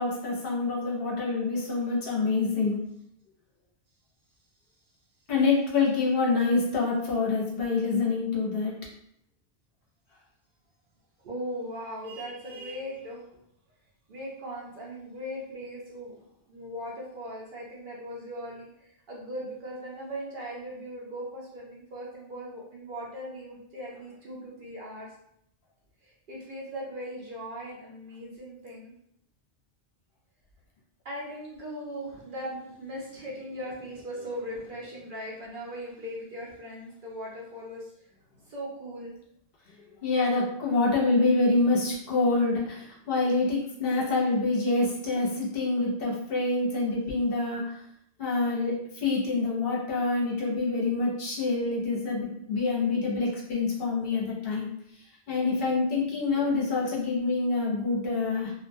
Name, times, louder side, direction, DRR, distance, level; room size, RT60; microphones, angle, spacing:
voice 1, 0.0-2.8 5.3-8.8 39.8-47.8 48.2-54.7 55.3-58.5, left 3 dB, 60° left, -4 dB, 0.8 m, -26 dB
voice 2, 11.2-13.3 14.1-16.2 16.5-25.1 26.0-28.9 31.0-37.9 38.5-39.1 56.3-56.5, equal, 55° right, -4 dB, 0.7 m, -39 dB
2.5 x 2.1 x 2.6 m, 0.72 s
omnidirectional pair, 1.1 m